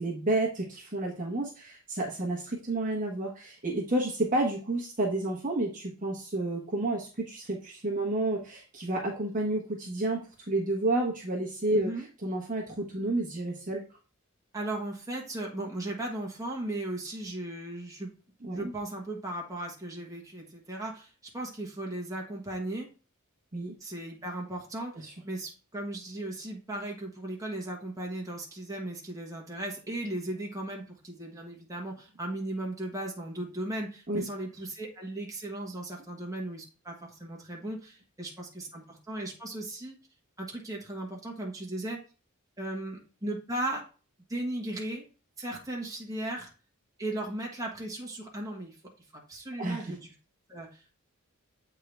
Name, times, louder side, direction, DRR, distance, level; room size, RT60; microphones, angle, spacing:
voice 1, 0.0-10.2 10.5-11.9 12.2-13.8 18.4-18.7 23.5-23.7 24.9-25.1 34.1-34.3 49.6-49.9, right 2 dB, 35° right, -2 dB, 1.2 m, -30 dB
voice 2, 11.7-12.0 14.5-18.1 18.5-22.9 23.8-39.9 40.4-42.0 42.6-43.9 44.3-45.1 45.4-46.5 47.0-48.8 49.1-50.1 50.5-50.7, right 1 dB, 15° right, -1 dB, 1.5 m, -36 dB
7.9 x 3.8 x 3.3 m, 0.35 s
head